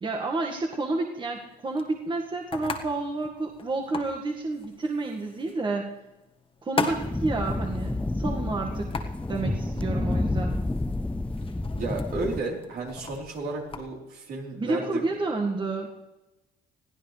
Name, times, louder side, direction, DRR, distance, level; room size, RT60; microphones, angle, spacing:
voice 1, 0.0-5.9 6.6-10.5 14.6-15.9, right 3 dB, 30° right, 1 dB, 1.8 m, -30 dB
sound 1, 1.4-13.9, left 4 dB, 30° left, 1.7 m, -39 dB
sound 2, 6.9-12.4, left 2 dB, 5° left, 0.5 m, -29 dB
voice 2, 11.8-15.1, right 3 dB, 65° right, -1 dB, 4.0 m, -33 dB
21.5 x 15.0 x 3.3 m, 1.0 s
cardioid pair, 110°, 17 cm